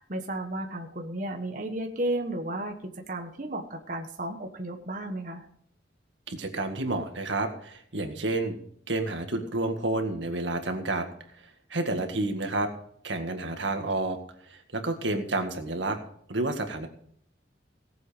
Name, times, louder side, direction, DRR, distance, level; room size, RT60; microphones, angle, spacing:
voice 1, 0.0-5.5, right 1 dB, 45° right, 3 dB, 1.3 m, -33 dB
voice 2, 6.3-8.6 8.9-11.1 11.7-12.7 13.0-14.2 14.5-16.0 16.3-16.9, right 2 dB, 85° right, 5 dB, 1.9 m, -30 dB
18.0 x 7.8 x 5.1 m, 0.65 s
head